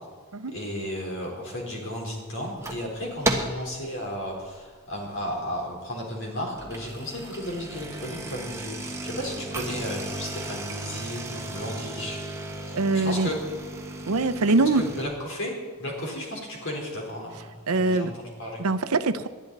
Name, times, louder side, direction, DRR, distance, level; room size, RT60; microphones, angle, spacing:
voice 1, 0.5-12.2 12.6-13.4 14.6-15.5 15.8-18.6, left 1 dB, 60° left, -1 dB, 3.9 m, -34 dB
sound 1, 2.4-2.9 3.2-3.7 4.1-4.5 5.0-5.1 5.3-5.4 6.4-15.1, right 1 dB, 15° right, 1.3 m, -34 dB
voice 2, 12.7-13.3 14.1-14.8 17.7-18.1 18.6-19.3, right 3 dB, 80° right, 11 dB, 0.7 m, -23 dB
20.0 x 12.0 x 4.1 m, 1.5 s
head